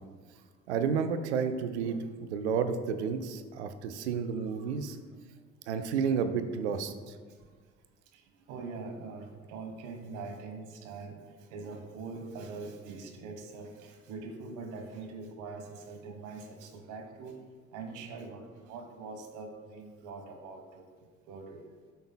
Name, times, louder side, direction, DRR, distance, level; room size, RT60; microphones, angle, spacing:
voice 1, 0.7-5.0 5.7-6.9, right 6 dB, 85° right, 9 dB, 0.6 m, -31 dB
voice 2, 8.5-11.2 11.5-17.4 17.7-20.8 21.3-21.6, right 4 dB, 70° right, 5 dB, 1.2 m, -43 dB
12.5 x 5.5 x 2.2 m, 1.5 s
hypercardioid pair, 50°, 33 cm